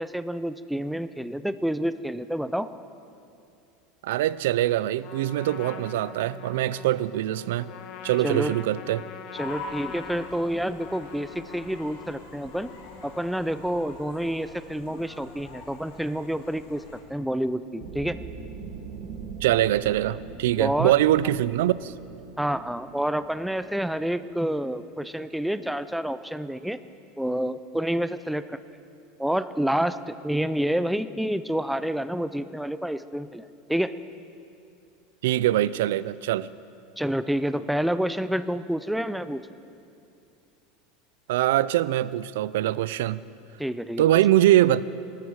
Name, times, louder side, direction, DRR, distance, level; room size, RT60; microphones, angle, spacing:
voice 1, 0.0-2.7 8.2-8.5 9.3-12.7 13.0-16.8 17.1-18.2 20.6-20.9 22.4-26.8 27.2-28.6 29.2-33.4 33.7-33.9 37.0-39.4 43.6-44.0, equal, ahead, 13 dB, 0.3 m, -28 dB
voice 2, 4.0-7.7 8.0-9.0 19.4-21.9 35.2-36.5 41.3-43.2 44.0-44.8, right 14 dB, 85° right, 18 dB, 0.4 m, -23 dB
Trumpet, 5.0-13.7, left 7 dB, 40° left, 0.9 m, -44 dB
sound 1, 9.3-17.0, left 3 dB, 75° left, 2.6 m, -44 dB
sound 2, 17.8-24.5, right 5 dB, 60° right, 1.7 m, -42 dB
19.0 x 13.0 x 4.7 m, 2.6 s
supercardioid pair, 165°, 0 cm